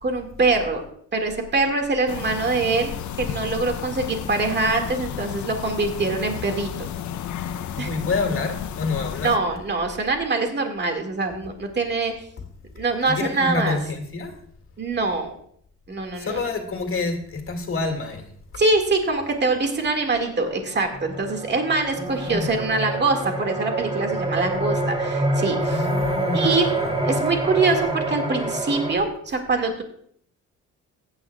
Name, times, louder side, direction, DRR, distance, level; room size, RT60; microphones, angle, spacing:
voice 1, 0.0-0.8 1.1-6.9 7.8-7.9 9.2-12.3 12.8-13.8 14.8-15.3 15.9-16.4 18.6-25.8 26.3-26.7 27.0-29.8, right 3 dB, 35° right, 4 dB, 1.9 m, -24 dB
sound 1, 2.1-9.4, left 9 dB, 70° left, 0.7 m, -32 dB
voice 2, 7.7-9.4 13.1-14.4 16.2-18.3 22.0-22.6 25.6-27.0, left 3 dB, 45° left, 4 dB, 2.2 m, -28 dB
sound 2, 20.5-28.9, right 1 dB, 20° right, 2.8 m, -26 dB
15.0 x 9.7 x 2.3 m, 0.65 s
cardioid pair, 90°, 30 cm